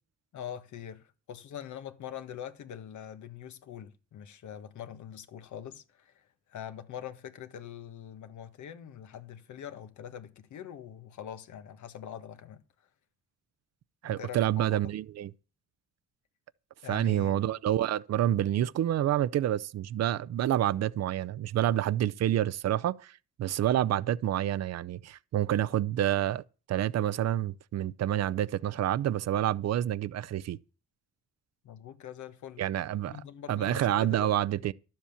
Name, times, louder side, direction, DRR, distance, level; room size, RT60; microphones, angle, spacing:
voice 1, 0.3-12.6 14.0-14.8 16.8-17.4 31.6-32.6 33.1-34.3, left 9 dB, 75° left, 1.5 m, -43 dB
voice 2, 14.0-15.3 16.9-23.1 23.4-30.6 32.6-33.2 33.5-34.7, right 12 dB, 60° right, 0.6 m, -28 dB
12.0 x 7.5 x 7.2 m
cardioid pair, 90°, 30 cm